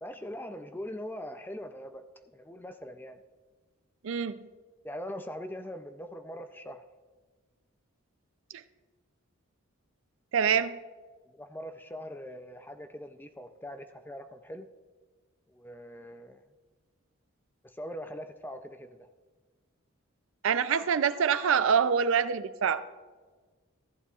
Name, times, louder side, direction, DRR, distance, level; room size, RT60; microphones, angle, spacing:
voice 1, 0.0-2.0 2.3-3.2 4.8-6.8 11.3-14.7 15.5-16.4 17.8-19.1, equal, 10° left, 8 dB, 0.4 m, -41 dB
voice 2, 4.0-4.4 8.5-8.6 10.3-10.8 20.4-22.8, right 7 dB, 60° right, 13 dB, 0.4 m, -25 dB
15.0 x 11.0 x 2.4 m, 1.4 s
head